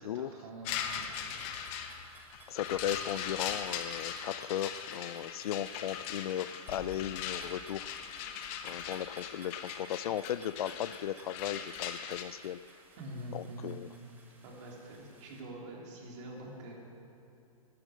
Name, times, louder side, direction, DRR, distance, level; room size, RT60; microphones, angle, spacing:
voice 1, 0.0-2.4 13.0-13.8 14.4-16.7, right 1 dB, 50° right, -2 dB, 3.4 m, -46 dB
sound 1, 0.6-12.2, left 8 dB, 30° left, 0.9 m, -40 dB
sound 2, 0.8-15.4, right 2 dB, 10° right, 1.4 m, -58 dB
voice 2, 2.5-8.4 8.6-12.6 13.3-13.9, left 11 dB, 75° left, 17 dB, 0.5 m, -36 dB
sound 3, 6.7-10.9, left 4 dB, 60° left, 3.1 m, -55 dB
14.0 x 11.5 x 6.3 m, 3.0 s
hypercardioid pair, 155°, 19 cm